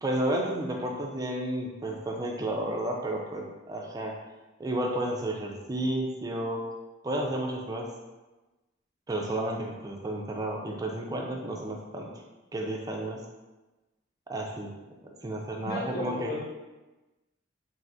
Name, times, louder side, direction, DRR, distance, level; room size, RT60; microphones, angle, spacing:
voice 1, 0.0-4.2 4.6-6.6 7.0-7.9 9.1-12.1 12.5-13.2 14.3-14.7 15.2-16.3, right 1 dB, 20° right, 0 dB, 0.4 m, -32 dB
voice 2, 15.6-16.4, left 1 dB, 55° left, -3 dB, 0.7 m, -34 dB
3.3 x 2.7 x 2.7 m, 1.1 s
head